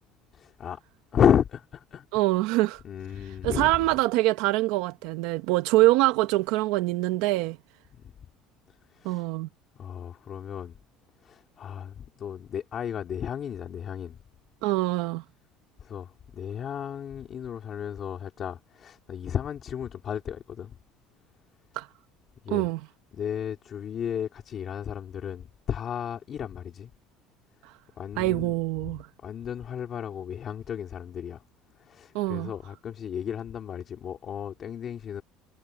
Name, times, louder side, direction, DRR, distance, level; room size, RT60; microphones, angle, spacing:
voice 1, 0.3-0.8 1.1-2.0 2.8-3.7 8.9-9.2 9.8-10.8 11.2-14.2 15.8-20.7 22.4-22.7 23.1-26.9 28.0-28.5 29.2-31.4 31.9-35.2, left 8 dB, 25° left, 3.1 m, -32 dB
voice 2, 2.1-2.8 3.2-7.6 9.0-9.5 14.6-15.2 21.8-21.9 22.5-22.9 27.6-27.7 28.2-29.1 32.1-32.5, right 18 dB, 65° right, 1.0 m, -24 dB
cardioid pair, 180°, 0 cm